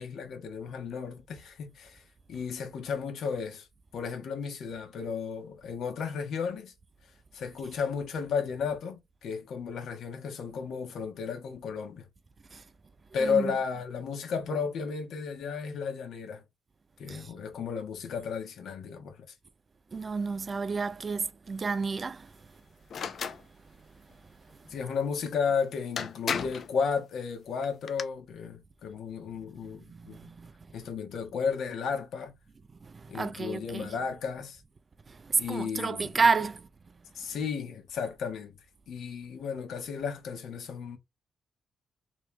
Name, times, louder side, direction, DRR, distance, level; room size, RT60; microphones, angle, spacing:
voice 1, 0.0-2.0 2.3-3.7 3.9-6.7 7.3-12.1 13.1-16.4 17.0-19.2 24.7-30.2 30.7-32.3 33.1-34.6 35.4-36.3 37.1-38.5 38.9-41.0, left 6 dB, 70° left, 1.3 m, -33 dB
voice 2, 13.2-13.5 17.1-17.3 19.9-22.3 29.9-30.5 32.9-33.9 35.2-36.6, right 4 dB, 30° right, 0.4 m, -30 dB
sound 1, 22.9-23.4 25.5-25.6 26.0-26.7 27.6-28.0, left 6 dB, 55° left, 0.6 m, -33 dB
3.1 x 3.1 x 3.2 m
cardioid pair, 110°, 0 cm